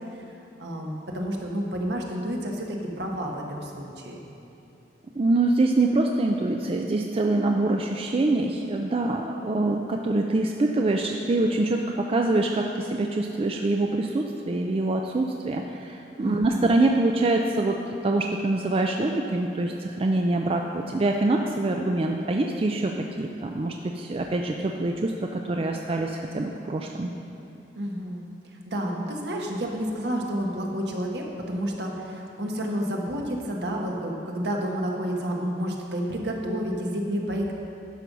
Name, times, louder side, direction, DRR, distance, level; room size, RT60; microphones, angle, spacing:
voice 1, 0.6-4.2 16.2-16.7 27.7-28.2 28.5-37.5, equal, 70° right, 0 dB, 1.3 m, -30 dB
voice 2, 5.2-17.8 18.0-27.1, right 2 dB, 30° right, 2 dB, 0.4 m, -25 dB
11.5 x 5.4 x 6.1 m, 2.9 s
head